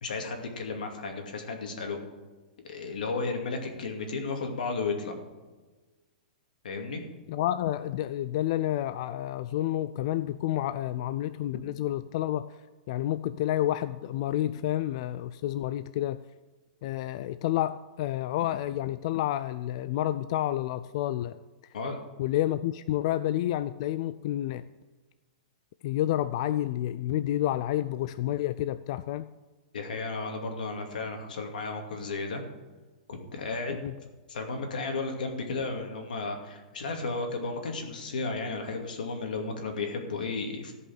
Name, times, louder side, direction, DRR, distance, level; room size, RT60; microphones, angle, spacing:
voice 1, 0.0-2.0 2.6-5.2 6.6-7.0 21.7-22.0 29.7-32.4 33.1-33.8 34.3-40.7, left 3 dB, 85° left, 3 dB, 2.4 m, -33 dB
voice 2, 7.3-12.5 12.9-16.2 16.8-21.4 22.2-24.7 25.8-29.3 33.8-33.9, left 13 dB, 45° left, 13 dB, 0.3 m, -29 dB
14.5 x 5.5 x 7.2 m, 1.3 s
hypercardioid pair, 160°, 5 cm